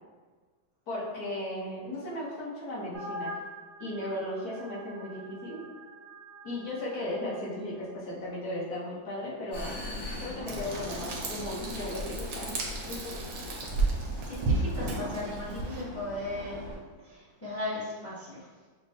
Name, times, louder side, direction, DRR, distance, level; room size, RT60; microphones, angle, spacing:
voice 1, 0.9-3.4 3.8-5.6 6.4-9.8 10.2-12.6 12.9-13.2, left 1 dB, 55° left, -6 dB, 1.4 m, -36 dB
sound 1, 2.9-7.4, equal, 85° right, 1.6 m, -44 dB
Vehicle, 9.5-16.8, left 1 dB, 90° left, 2.3 m, -41 dB
Frying (food), 10.5-15.8, right 3 dB, 70° right, 1.3 m, -33 dB
voice 2, 14.3-16.6 17.1-18.4, left 2 dB, 20° left, -9 dB, 0.4 m, -37 dB
6.3 x 2.2 x 2.7 m, 1.4 s
omnidirectional pair, 2.2 m